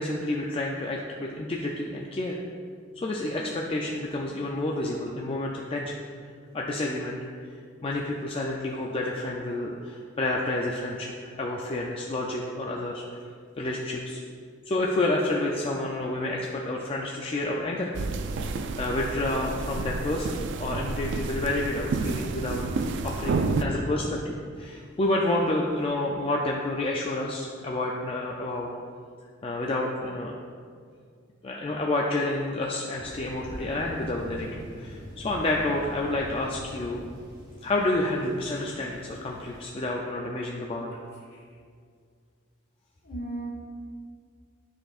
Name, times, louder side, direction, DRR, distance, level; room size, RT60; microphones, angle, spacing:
voice 1, 0.0-2.4 3.0-6.0 6.5-7.2 7.8-11.1 11.4-13.0 13.6-14.2 14.7-17.9 18.8-28.7 29.4-30.3 31.4-37.0 37.6-40.9, left 2 dB, 30° left, -1 dB, 0.4 m, -29 dB
sound 1, 17.9-23.6, right 3 dB, 60° right, 0.3 m, -30 dB
Thunder, 33.0-39.6, equal, 20° right, 1.5 m, -43 dB
voice 2, 43.0-43.5, right 2 dB, 55° left, -4 dB, 1.5 m, -36 dB
10.5 x 4.3 x 2.4 m, 2.1 s
head